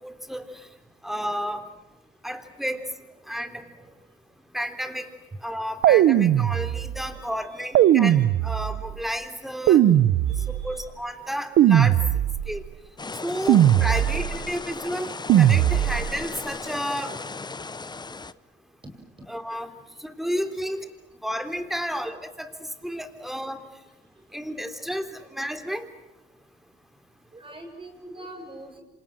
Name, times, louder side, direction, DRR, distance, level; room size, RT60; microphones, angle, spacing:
voice 1, 0.0-0.4 1.0-1.6 2.2-2.9 3.3-3.6 4.5-5.1 5.4-9.8 10.5-12.0 12.5-12.6 13.2-17.1 19.3-19.7 20.0-20.8 21.2-22.5 22.8-23.6 24.3-25.9, equal, ahead, 8 dB, 3.4 m, -31 dB
voice 2, 3.4-3.9 6.7-6.8 7.1-7.3 7.5-7.7 8.0-8.2 9.8-9.9 10.3-10.9 14.4-14.5 18.1-18.2 20.2-20.3 20.6-20.8 21.9-22.2 24.8-24.9 27.3-28.8, right 1 dB, 25° right, 6 dB, 7.0 m, -45 dB
sound 1, 5.8-7.1 7.8-8.9 9.7-10.8 11.6-12.6 13.5-14.4 15.3-16.2, right 11 dB, 75° right, 0.9 m, -19 dB
sound 2, 13.0-18.3, left 4 dB, 20° left, 1.0 m, -36 dB
28.0 x 27.0 x 7.7 m, 0.99 s
cardioid pair, 90°, 20 cm